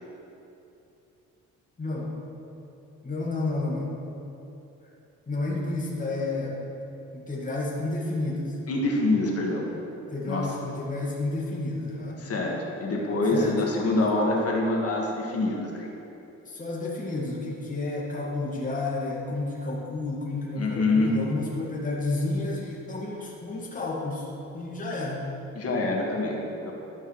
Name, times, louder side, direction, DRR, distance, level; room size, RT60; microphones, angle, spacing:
voice 1, 1.8-2.2 3.0-3.9 5.3-6.6 7.1-8.6 10.1-12.3 13.3-13.5 16.4-24.3 24.5-25.2, left 2 dB, 25° left, -5 dB, 2.1 m, -31 dB
voice 2, 8.7-9.7 10.2-10.5 12.2-12.5 12.8-15.9 20.6-21.1 25.5-26.7, left 2 dB, 50° left, -2 dB, 2.0 m, -25 dB
12.5 x 5.4 x 4.8 m, 2.9 s
cardioid pair, 90°, 30 cm